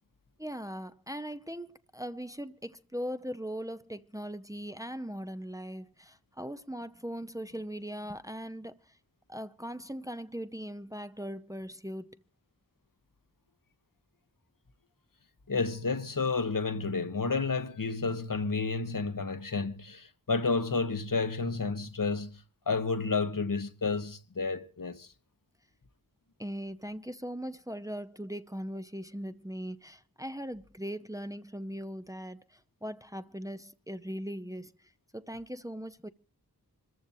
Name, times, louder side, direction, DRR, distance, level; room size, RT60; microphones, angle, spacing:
voice 1, 0.4-9.0 9.3-12.2 26.4-36.1, equal, 10° right, 0.7 m, -40 dB
voice 2, 15.5-25.1, left 4 dB, 60° left, 1.2 m, -31 dB
26.5 x 14.0 x 2.7 m
wide cardioid pair, 60°, 36 cm